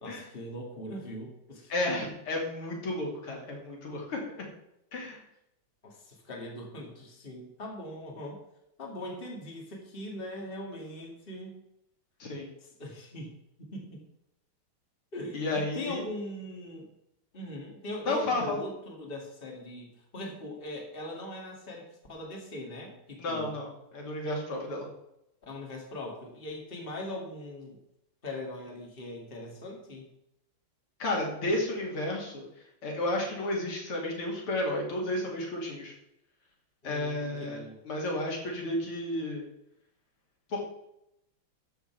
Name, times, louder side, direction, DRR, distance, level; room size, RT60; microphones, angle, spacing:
voice 1, 0.0-1.7 5.8-8.4 8.8-11.6 12.6-13.3 13.6-14.0 15.1-16.9 17.3-23.6 25.5-27.8 28.2-30.1 36.8-37.8, left 1 dB, 25° left, -1 dB, 2.3 m, -40 dB
voice 2, 1.7-4.2 4.9-5.2 12.2-12.5 15.3-16.0 18.1-18.6 23.2-24.9 31.0-32.4 32.8-35.9 36.8-39.5 40.5-40.6, left 1 dB, 80° left, -1 dB, 3.5 m, -32 dB
13.0 x 7.2 x 4.6 m, 0.80 s
omnidirectional pair, 2.4 m